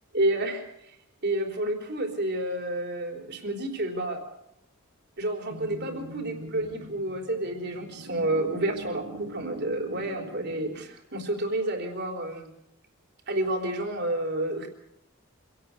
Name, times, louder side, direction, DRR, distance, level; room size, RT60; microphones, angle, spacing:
voice 1, 0.1-1.0 1.2-4.2 5.2-12.5 13.3-14.7, right 1 dB, 50° right, 3 dB, 4.0 m, -30 dB
sound 1, 5.5-10.8, right 1 dB, 85° right, 5.0 m, -42 dB
25.5 x 17.5 x 6.8 m, 0.77 s
head